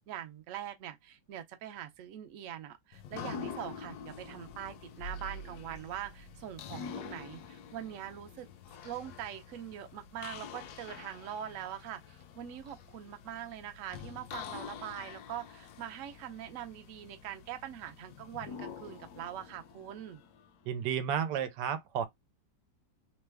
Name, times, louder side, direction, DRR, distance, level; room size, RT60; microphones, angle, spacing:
voice 1, 0.1-8.5 8.8-20.2, right 11 dB, 65° right, 0.8 m, -43 dB
sound 1, 2.9-20.7, left 6 dB, 70° left, 1.0 m, -46 dB
voice 2, 20.7-22.1, right 8 dB, 85° right, 1.2 m, -32 dB
3.0 x 2.1 x 3.3 m
omnidirectional pair, 1.9 m